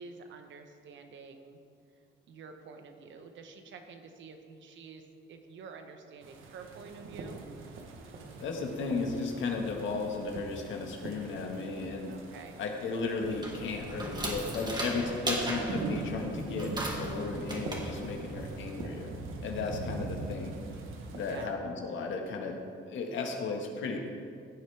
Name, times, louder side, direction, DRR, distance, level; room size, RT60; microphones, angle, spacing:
voice 1, 0.0-1.6 2.3-7.6 12.1-12.6 19.5-19.6 21.1-21.6, right 5 dB, 70° right, 5 dB, 1.2 m, -49 dB
sound 1, 6.2-21.4, right 2 dB, 90° right, 1.3 m, -42 dB
voice 2, 8.4-12.1 12.6-19.1 19.4-20.5 21.1-22.6 22.9-24.1, left 4 dB, 75° left, 2 dB, 1.7 m, -35 dB
sound 2, 13.2-18.9, right 1 dB, 20° right, 1.9 m, -37 dB
16.0 x 8.4 x 3.5 m, 2.3 s
cardioid pair, 90°, 20 cm